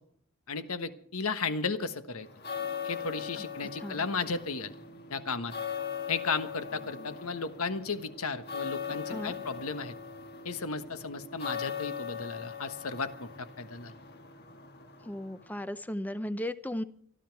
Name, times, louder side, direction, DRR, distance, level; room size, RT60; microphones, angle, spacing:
voice 1, 0.5-2.3 2.8-4.7 5.1-5.5 6.1-9.9 10.4-13.9, left 4 dB, 80° left, 11 dB, 1.3 m, -34 dB
sound 1, 2.2-15.8, left 7 dB, 45° left, 1.6 m, -40 dB
voice 2, 9.1-9.4 15.0-16.8, left 1 dB, 5° left, 13 dB, 0.6 m, -36 dB
23.5 x 12.5 x 4.7 m, 0.63 s
head